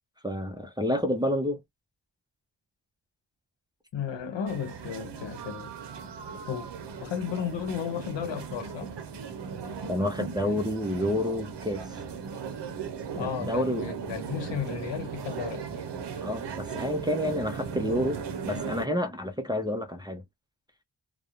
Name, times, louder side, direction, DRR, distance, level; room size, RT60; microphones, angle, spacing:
voice 1, 0.2-1.6 9.9-11.8 13.2-13.8 16.2-18.2 18.5-20.2, left 1 dB, 10° right, 0.3 m, -29 dB
voice 2, 3.9-5.7 6.5-6.7 7.0-9.0 13.2-15.9, left 8 dB, 90° left, 0.8 m, -34 dB
sound 1, 4.5-18.9, right 6 dB, 75° right, 0.6 m, -37 dB
2.3 x 2.0 x 2.8 m
wide cardioid pair, 95°, 43 cm